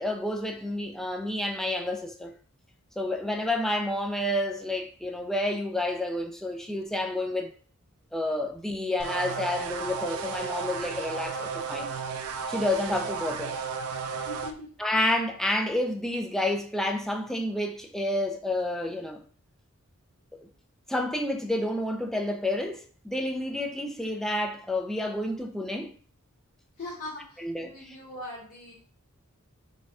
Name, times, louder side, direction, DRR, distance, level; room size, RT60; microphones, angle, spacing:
voice 1, 0.0-2.3 3.0-7.5 8.1-11.9 12.5-13.6 14.8-19.2 20.3-20.5 20.9-25.9 27.4-28.0, left 1 dB, ahead, 0.4 m, -29 dB
sound 1, 9.0-14.5, right 5 dB, 75° right, 0.4 m, -34 dB
voice 2, 14.1-14.7 26.8-28.7, left 1 dB, 40° left, 1.1 m, -41 dB
4.1 x 2.2 x 3.5 m
head